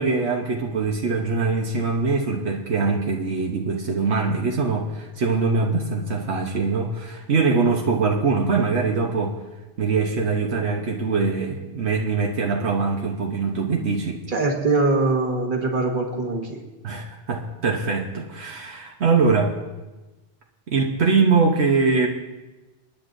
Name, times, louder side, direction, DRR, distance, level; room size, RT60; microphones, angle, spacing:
voice 1, 0.0-9.3 9.8-14.2 16.8-19.6 20.7-22.1, right 4 dB, 80° right, 0 dB, 1.3 m, -22 dB
voice 2, 14.3-16.6, right 3 dB, 50° right, 1 dB, 1.7 m, -22 dB
29.5 x 9.9 x 2.6 m, 1.1 s
omnidirectional pair, 1.1 m